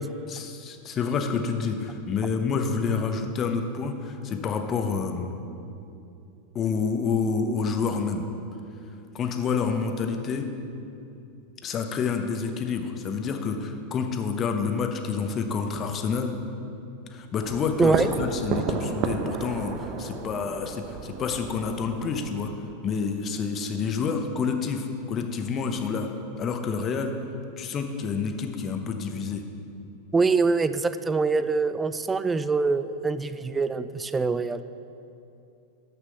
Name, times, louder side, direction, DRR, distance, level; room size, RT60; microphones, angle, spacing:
voice 1, 0.3-5.3 6.5-8.3 9.1-10.5 11.6-16.3 17.1-22.5 22.8-26.1 26.4-27.1 27.6-29.4, left 5 dB, 35° left, 5 dB, 0.8 m, -28 dB
sound 1, 17.4-22.4, right 5 dB, 50° right, 0.7 m, -32 dB
voice 2, 30.1-34.6, right 4 dB, 15° right, 13 dB, 0.3 m, -24 dB
6.5 x 6.0 x 6.5 m, 2.7 s
hypercardioid pair, 105°, 0 cm